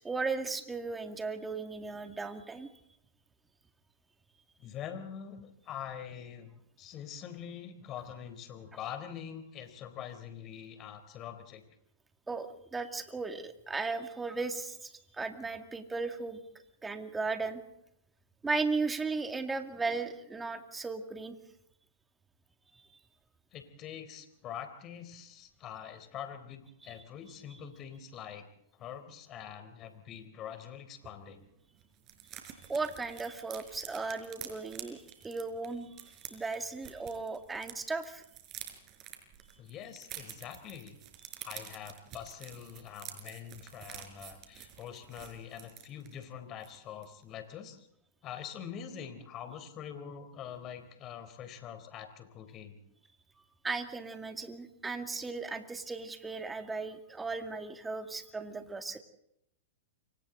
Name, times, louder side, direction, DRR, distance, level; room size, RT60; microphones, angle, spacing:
voice 1, 0.0-2.7 12.3-16.4 16.8-17.6 18.4-21.4 22.7-22.9 32.7-38.2 53.6-59.0, right 4 dB, 10° right, 7 dB, 2.2 m, -36 dB
voice 2, 4.6-11.6 23.5-28.5 28.7-31.5 39.6-41.0 41.4-47.9 48.2-52.8, left 8 dB, 35° left, 8 dB, 3.8 m, -44 dB
sound 1, 31.0-31.1 31.4-31.5 31.7-37.7 38.0-46.2 46.6-46.8 47.0-47.3, right 11 dB, 35° right, 5.0 m, -48 dB
29.0 x 24.5 x 4.0 m, 0.76 s
hypercardioid pair, 130°, 0 cm